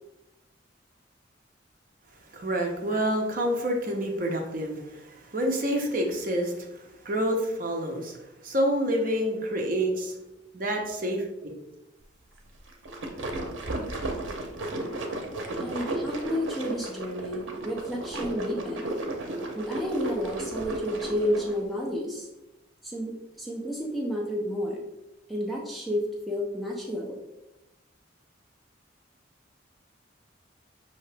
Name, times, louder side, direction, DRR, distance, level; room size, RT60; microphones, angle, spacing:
voice 1, 2.3-8.2 8.4-10.2 10.5-11.2 13.9-14.0, equal, 45° right, 1 dB, 0.7 m, -28 dB
sound 1, 12.7-21.6, right 2 dB, 85° right, 0.7 m, -34 dB
voice 2, 15.6-18.9 19.5-22.3 22.8-24.8 25.3-27.2, equal, ahead, -2 dB, 0.5 m, -31 dB
5.7 x 2.8 x 3.3 m, 0.96 s
head